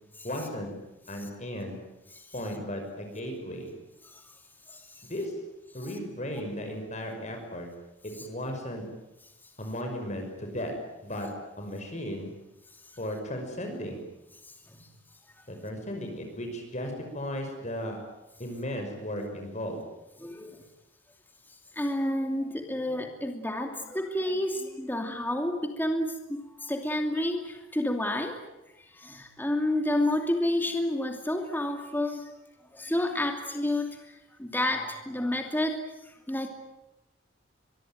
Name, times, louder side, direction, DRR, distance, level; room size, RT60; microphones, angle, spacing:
voice 1, 0.2-0.7 1.1-1.8 2.3-3.7 5.0-5.3 5.7-7.7 8.0-8.8 9.6-10.7 11.0-11.3 11.6-12.3 13.0-14.0 15.5-18.0 18.4-19.8, equal, 40° left, 4 dB, 5.8 m, -35 dB
voice 2, 4.7-5.0 14.7-14.9 20.2-20.6 21.7-28.3 28.8-32.3 32.7-36.5, left 1 dB, 10° left, 4 dB, 2.7 m, -30 dB
24.5 x 23.5 x 9.3 m, 0.94 s
head